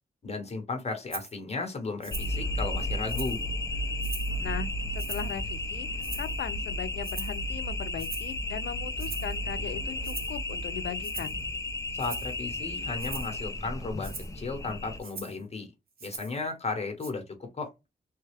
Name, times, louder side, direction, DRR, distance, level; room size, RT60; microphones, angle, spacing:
voice 1, 0.2-3.4 11.9-15.7 16.0-17.7, left 3 dB, 40° left, 1.0 m, -35 dB
Rattle (instrument), 1.1-1.3 2.0-2.4 2.8-3.5 4.0-4.4 5.0-5.4 6.0-6.5 7.0-7.4 8.0-8.4 9.0-9.4 10.0-10.4 11.0-11.4 12.0-12.3 13.0-13.4 14.0-14.3 15.0-15.4 16.0-16.4 17.0-17.1, right 4 dB, 60° right, 1.0 m, -41 dB
sound 1, 2.1-15.0, left 1 dB, 20° left, 0.6 m, -33 dB
voice 2, 4.4-5.9 6.2-11.4, left 9 dB, 90° left, 0.4 m, -38 dB
3.2 x 2.2 x 3.3 m
cardioid pair, 95°, 17 cm